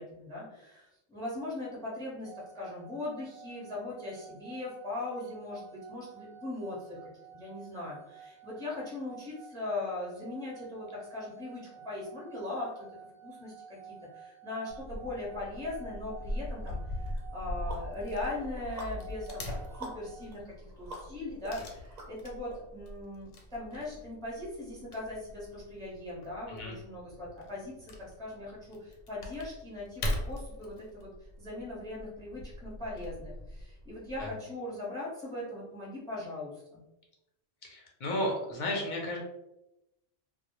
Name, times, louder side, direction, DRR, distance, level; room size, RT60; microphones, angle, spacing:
voice 1, 0.0-12.9 13.2-19.5 19.8-31.1 31.4-36.8, left 2 dB, 5° left, -5 dB, 0.6 m, -40 dB
sound 1, 2.2-20.3, right 7 dB, 90° right, 0.9 m, -52 dB
Wood / Tearing, 14.7-34.3, left 1 dB, 90° left, 1.0 m, -41 dB
sound 2, 16.6-16.7 17.2-22.5, right 2 dB, 45° right, 0.5 m, -48 dB
voice 2, 37.6-39.2, left 1 dB, 50° left, -1 dB, 0.6 m, -33 dB
2.1 x 2.1 x 2.9 m, 0.91 s
omnidirectional pair, 1.3 m